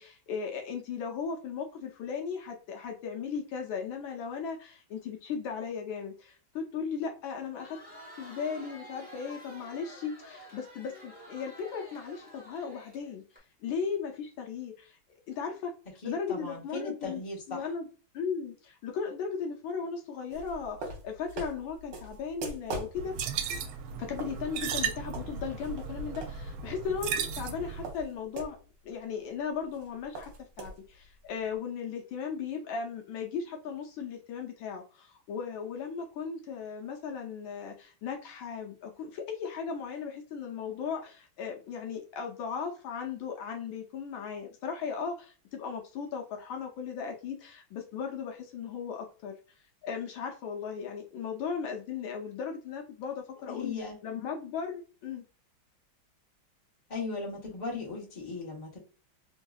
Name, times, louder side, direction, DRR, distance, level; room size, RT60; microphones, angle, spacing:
voice 1, 0.0-7.8 8.2-13.2 13.6-15.0 15.3-15.7 16.0-17.2 17.5-17.9 18.1-23.1 24.0-28.6 28.8-30.3 30.6-49.3 49.8-53.7 54.0-55.2, left 6 dB, 75° left, 1.5 m, -37 dB
Crowd, 7.4-13.4, equal, 5° right, 1.2 m, -50 dB
voice 2, 16.0-17.6 53.5-54.0 56.9-58.8, left 3 dB, 25° left, 1.2 m, -37 dB
sound 1, 20.3-28.6 28.9-29.0 29.2-31.5, right 2 dB, 65° right, 1.6 m, -43 dB
sound 2, 23.0-27.9, right 7 dB, 85° right, 1.4 m, -35 dB
3.7 x 2.8 x 2.3 m
omnidirectional pair, 2.2 m